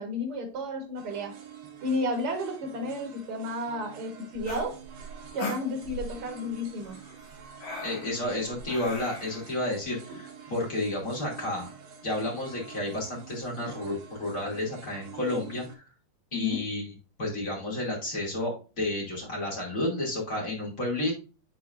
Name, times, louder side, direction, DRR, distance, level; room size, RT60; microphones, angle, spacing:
voice 1, 0.0-1.4 1.8-4.8 5.3-7.0 10.1-10.2 16.3-16.6, left 1 dB, 80° right, 1.2 m, -32 dB
sound 1, 1.0-15.8, right 7 dB, 60° right, 3.2 m, -48 dB
sound 2, 4.4-6.2 6.8-9.5, left 2 dB, 70° left, 5.5 m, -39 dB
voice 2, 7.8-11.7 12.0-15.9 16.3-16.9 17.2-21.1, left 1 dB, 25° left, 2.1 m, -31 dB
11.5 x 3.9 x 2.5 m
omnidirectional pair, 5.0 m